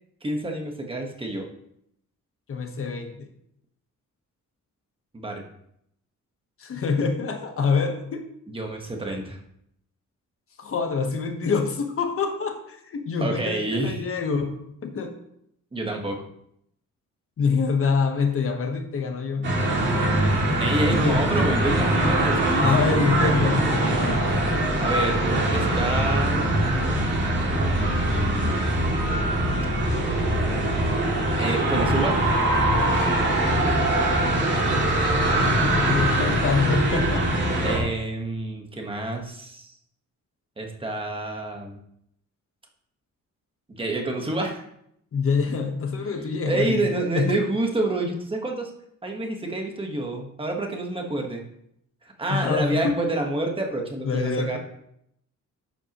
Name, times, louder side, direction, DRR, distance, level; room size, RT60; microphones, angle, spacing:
voice 1, 0.2-1.5 5.1-5.4 8.5-9.4 13.2-14.1 15.7-16.2 20.6-23.0 24.8-25.2 25.5-26.4 27.7-28.7 31.4-32.2 37.6-39.7 40.6-41.8 43.7-44.6 46.0-48.7 49.0-51.4 52.0-54.6, right 2 dB, 15° right, 2 dB, 1.2 m, -28 dB
voice 2, 2.5-3.1 6.6-8.2 10.6-15.1 17.4-19.5 21.0-21.2 22.6-24.5 32.8-33.4 35.2-37.3 45.1-46.9 47.1-47.4 52.3-53.0 54.0-54.6, left 5 dB, 45° left, 5 dB, 1.1 m, -26 dB
sound 1, 19.4-37.8, right 1 dB, 35° right, 2.3 m, -22 dB
11.0 x 7.8 x 3.0 m, 0.75 s
wide cardioid pair, 180°, 32 cm